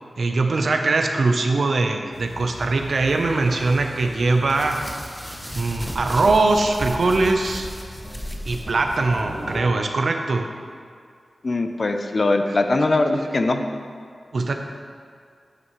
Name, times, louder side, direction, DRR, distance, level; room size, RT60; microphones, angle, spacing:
voice 1, 0.2-4.8 5.5-7.7 8.5-10.4 12.5-12.6 14.3-14.5, right 3 dB, 70° right, 4 dB, 0.7 m, -21 dB
sound 1, 2.1-9.6, equal, 15° right, 2.0 m, -40 dB
sound 2, 4.5-9.2, equal, 5° left, 0.9 m, -35 dB
voice 2, 11.4-13.6, left 2 dB, 50° left, 6 dB, 0.6 m, -21 dB
9.5 x 9.1 x 3.1 m, 2.2 s
wide cardioid pair, 80°, 0 cm